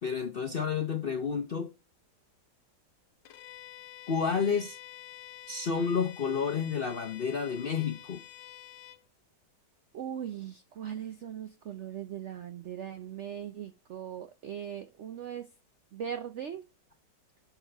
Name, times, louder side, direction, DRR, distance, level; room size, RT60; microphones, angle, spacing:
voice 1, 0.0-1.7 4.1-4.8 5.5-8.2, left 6 dB, 55° left, 0.6 m, -30 dB
Bowed string instrument, 3.2-9.0, left 12 dB, 85° left, 1.5 m, -48 dB
voice 2, 9.9-15.5 15.9-16.6, right 9 dB, 70° right, 0.6 m, -39 dB
7.2 x 5.7 x 3.4 m
omnidirectional pair, 1.9 m